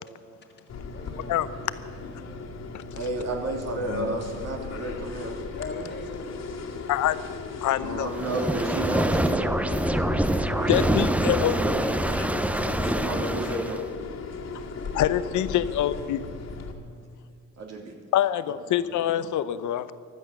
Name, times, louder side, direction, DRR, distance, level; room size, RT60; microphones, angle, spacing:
sound 1, 0.7-16.7, left 4 dB, 60° left, 2.1 m, -37 dB
voice 1, 0.8-1.4 5.5-6.4 10.4-12.7 14.7-16.4, left 3 dB, 35° left, -2 dB, 1.9 m, -43 dB
voice 2, 2.9-5.4 7.8-9.7 10.5-10.8 11.2-11.9 12.9-13.8 17.6-17.9 18.8-18.9, right 2 dB, 60° right, 0 dB, 3.1 m, -32 dB
voice 3, 7.6-8.1 10.7-11.6 12.2-12.3 14.9-16.2 18.1-19.9, left 12 dB, 75° left, 14 dB, 0.8 m, -25 dB
sound 2, 8.1-13.9, right 1 dB, 5° right, 0.7 m, -25 dB
15.5 x 12.0 x 6.7 m, 2.4 s
cardioid pair, 90°, 30 cm